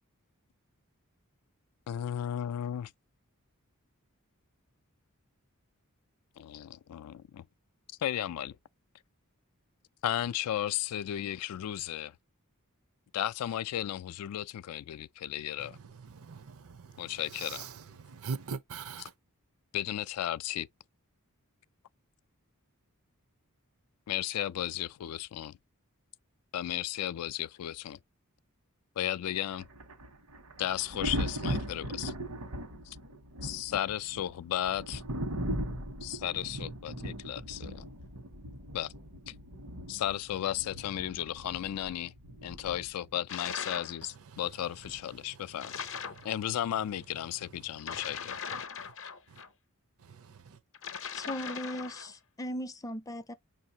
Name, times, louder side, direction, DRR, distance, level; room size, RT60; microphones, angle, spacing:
voice 1, 1.9-2.9 6.4-7.5 8.0-8.6 10.0-12.2 13.1-15.8 17.0-17.7 19.0-19.1 19.7-20.7 24.1-25.6 26.5-28.0 29.0-29.7 30.6-32.1 32.8-33.0 33.4-35.0 36.0-37.9 38.7-38.9 39.3-39.4 39.9-42.1 42.4-45.8 46.2-48.4, left 11 dB, 85° left, 0.3 m, -34 dB
voice 2, 16.1-17.0 17.4-17.7 18.0-19.1 46.1-46.3 49.3-49.4 50.1-50.6, right 5 dB, 65° right, 0.5 m, -41 dB
Thunder, 29.5-43.2 44.8-45.0, equal, 85° right, 1.2 m, -39 dB
sound 1, 43.3-44.0 45.6-46.3 47.8-49.5 50.7-52.1, left 6 dB, 60° left, 0.6 m, -39 dB
voice 3, 51.1-53.3, equal, 15° left, 0.4 m, -38 dB
5.6 x 2.7 x 2.7 m
head